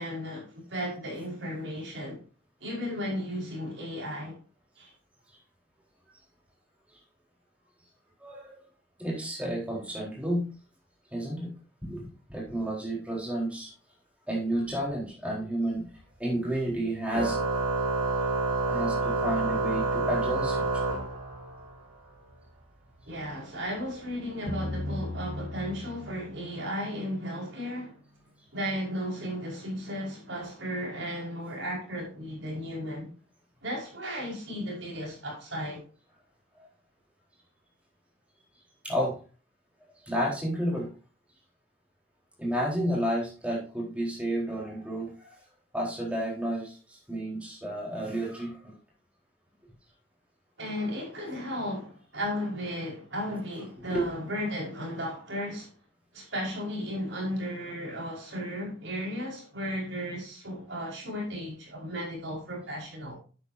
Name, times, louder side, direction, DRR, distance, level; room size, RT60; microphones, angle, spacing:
voice 1, 0.0-2.2 2.6-4.4 4.8-4.9 23.1-28.0 28.5-33.1 33.6-35.9 50.6-55.7 56.1-63.2, equal, 70° right, 5.3 m, -35 dB
voice 2, 8.2-8.5 9.0-10.5 11.1-11.5 11.8-12.0 12.3-13.7 14.3-15.9 16.2-17.4 18.7-20.7 38.8-39.2 40.0-40.9 42.4-45.4 45.7-48.7 53.9-54.0, right 1 dB, 5° right, 4.2 m, -31 dB
Organ, 17.1-21.7, right 3 dB, 85° right, 3.4 m, -28 dB
sound 1, 24.5-27.6, left 1 dB, 30° left, 1.4 m, -37 dB
10.5 x 8.7 x 2.8 m
head